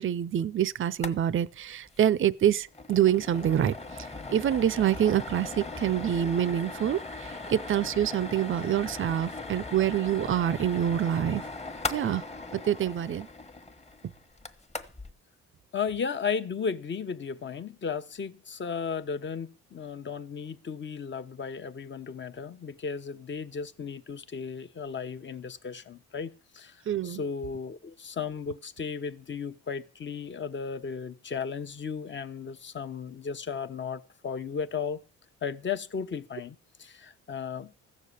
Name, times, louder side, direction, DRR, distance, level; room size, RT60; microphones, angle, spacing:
voice 1, 0.0-3.7 4.3-11.4 11.9-12.2 12.5-13.3 26.9-27.2, right 10 dB, 40° right, 0.6 m, -26 dB
sound 1, 0.9-1.2 1.4-1.5 1.9-2.1 2.4-15.1, left 3 dB, 20° left, 1.3 m, -39 dB
voice 2, 15.7-35.0 35.4-37.7, left 6 dB, 40° left, 1.0 m, -35 dB
15.0 x 6.6 x 8.3 m
cardioid pair, 90°, 30 cm